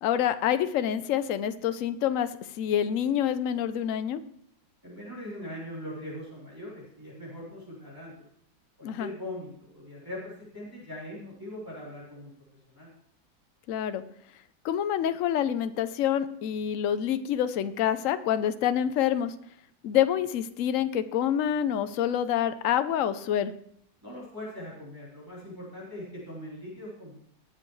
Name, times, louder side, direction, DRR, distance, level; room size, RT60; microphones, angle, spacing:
voice 1, 0.0-2.3 2.6-4.2 8.8-9.1 13.7-14.0 14.6-19.3 19.8-23.5, left 10 dB, 65° left, 12 dB, 0.8 m, -27 dB
voice 2, 4.8-8.1 8.8-12.3 12.7-12.9 24.0-27.1, left 1 dB, 10° right, -7 dB, 3.7 m, -41 dB
20.0 x 7.5 x 3.2 m, 0.69 s
omnidirectional pair, 2.1 m